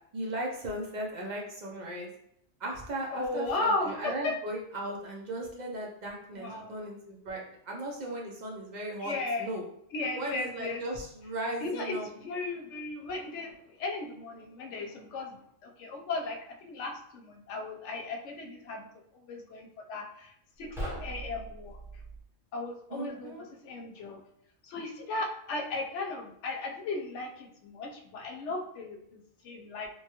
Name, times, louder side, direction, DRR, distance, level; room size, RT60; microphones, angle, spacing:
voice 1, 0.1-2.1 2.6-9.1 9.4-9.6 10.2-12.1 22.9-23.4, right 1 dB, 55° right, -1 dB, 0.5 m, -37 dB
voice 2, 3.1-4.3 6.3-6.7 9.0-9.5 9.9-10.8 11.6-15.4 15.6-18.9 19.2-20.3 20.6-20.7 21.0-21.8 22.5-23.3 23.6-24.2 24.6-29.9, left 3 dB, 75° left, 3 dB, 0.9 m, -36 dB
sound 1, 20.6-22.2, right 1 dB, 5° right, 0.6 m, -39 dB
3.0 x 2.2 x 2.8 m, 0.73 s
omnidirectional pair, 1.2 m